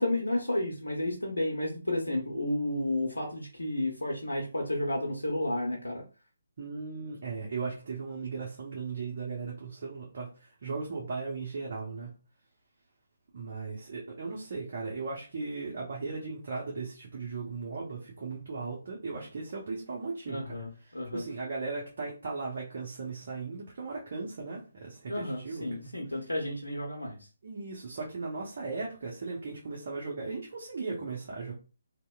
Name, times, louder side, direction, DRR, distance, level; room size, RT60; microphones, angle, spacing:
voice 1, 0.0-6.0 20.3-21.2 25.1-27.2, left 1 dB, 85° left, -1 dB, 0.7 m, -32 dB
voice 2, 6.6-10.3 10.6-12.1 13.3-20.5 20.9-25.9 27.4-31.5, right 4 dB, 50° right, -3 dB, 0.7 m, -37 dB
2.8 x 2.0 x 2.3 m, 0.34 s
figure-of-eight pair, 145°, 0 cm